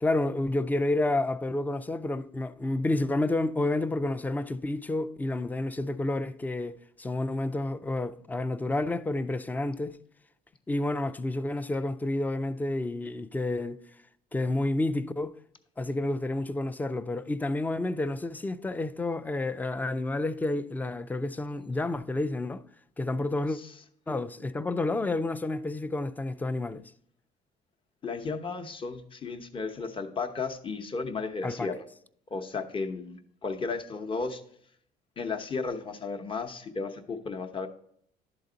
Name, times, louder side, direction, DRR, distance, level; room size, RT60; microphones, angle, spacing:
voice 1, 0.0-10.0 10.7-13.8 14.3-15.4 15.8-22.7 23.0-23.6 24.1-26.9 31.4-31.7, left 2 dB, 10° left, 0.4 m, -30 dB
voice 2, 28.0-31.8 32.3-34.4 35.2-37.7, left 4 dB, 30° left, 0.9 m, -34 dB
11.5 x 4.0 x 3.9 m
cardioid pair, 110°, 17 cm